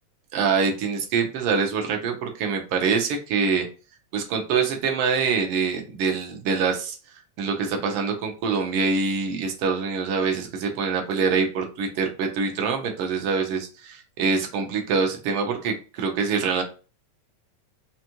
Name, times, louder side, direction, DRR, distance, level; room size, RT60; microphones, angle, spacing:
voice 1, 0.3-3.6 4.1-7.0 7.4-16.6, right 5 dB, 70° right, 2 dB, 1.4 m, -25 dB
5.3 x 2.5 x 2.9 m, 0.34 s
omnidirectional pair, 3.4 m